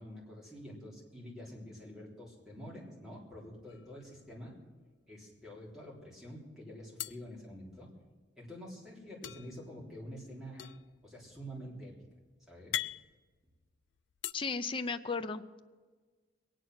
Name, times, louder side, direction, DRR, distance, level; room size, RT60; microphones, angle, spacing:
voice 1, 0.0-4.6 5.1-7.9 8.4-10.7 11.0-11.9 12.5-12.8, equal, 5° right, -4 dB, 3.6 m, -47 dB
sound 1, 3.7-4.6 4.9-5.0 5.3-6.0 7.0-8.2 9.2-14.3, left 13 dB, 75° left, 0.4 m, -43 dB
voice 2, 14.3-15.6, left 4 dB, 30° left, 9 dB, 0.6 m, -35 dB
21.5 x 9.1 x 6.3 m, 1.4 s
head